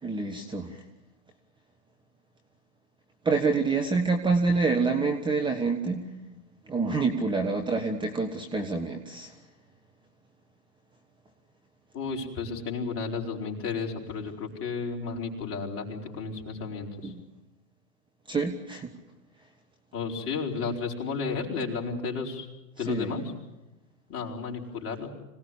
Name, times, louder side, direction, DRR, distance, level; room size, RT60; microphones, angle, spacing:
voice 1, 0.0-0.8 3.2-6.1 6.7-9.3 17.0-17.2 18.3-18.9 22.8-23.1, right 4 dB, 10° right, 4 dB, 1.3 m, -27 dB
voice 2, 11.9-17.1 19.9-22.5 22.8-23.2 24.1-25.1, left 5 dB, 30° left, 0 dB, 4.8 m, -32 dB
26.0 x 18.5 x 10.0 m, 0.99 s
hypercardioid pair, 125°, 47 cm